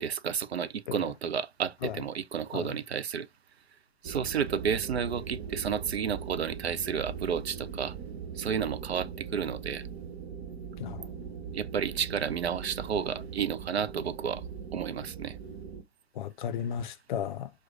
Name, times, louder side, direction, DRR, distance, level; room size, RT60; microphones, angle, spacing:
voice 1, 0.0-3.3 4.0-8.0 8.4-9.8 11.5-14.4 14.7-15.4, right 7 dB, 75° right, 0.6 m, -31 dB
sound 1, 4.0-15.8, right 7 dB, 50° right, 1.0 m, -41 dB
voice 2, 16.2-17.5, left 9 dB, 50° left, 0.5 m, -34 dB
6.0 x 2.2 x 2.4 m
figure-of-eight pair, 110°, 32 cm